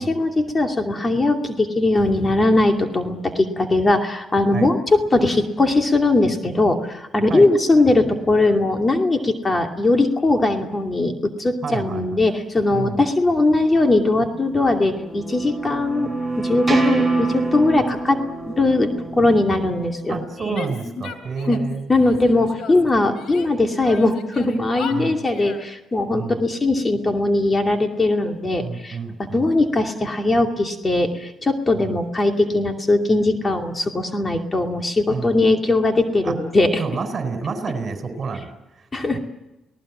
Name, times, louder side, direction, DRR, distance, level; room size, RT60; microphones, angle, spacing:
voice 1, 0.0-18.2 18.5-20.6 20.9-21.0 21.5-21.6 21.9-36.8 38.9-39.2, left 2 dB, 25° left, 4 dB, 2.5 m, -20 dB
voice 2, 11.6-12.2 12.7-13.0 20.1-21.8 24.9-25.3 26.1-26.4 28.6-29.5 31.7-31.9 35.1-35.3 36.2-36.4 36.8-38.5 39.1-39.2, right 5 dB, 45° right, 7 dB, 4.6 m, -29 dB
sound 1, 14.4-20.4, right 3 dB, 10° right, 7.5 m, -26 dB
Female speech woman speaking / Yell, 20.5-21.7 22.0-23.5 23.8-25.7, left 6 dB, 75° left, 3.2 m, -36 dB
29.0 x 18.5 x 7.4 m, 0.95 s
cardioid pair, 90°, 0 cm